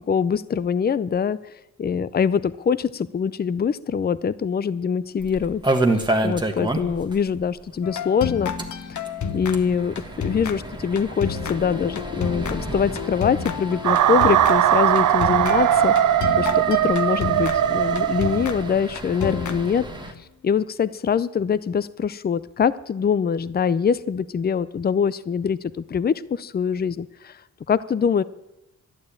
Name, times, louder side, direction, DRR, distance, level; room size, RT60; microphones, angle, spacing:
voice 1, 0.0-1.4 1.8-5.6 6.2-8.5 8.9-9.0 9.3-9.9 10.2-16.0 16.4-20.1 20.4-27.3 27.7-28.2, left 7 dB, 30° left, 18 dB, 0.5 m, -23 dB
sound 1, 5.2-7.2 7.4-7.5 7.8-7.9 8.4-20.1, right 2 dB, 15° right, 1.5 m, -30 dB
sound 2, 7.8-20.2, left 6 dB, 70° left, 1.1 m, -31 dB
sound 3, 13.8-18.8, right 11 dB, 70° right, 0.5 m, -19 dB
12.0 x 11.0 x 8.7 m, 0.94 s
wide cardioid pair, 110°, 31 cm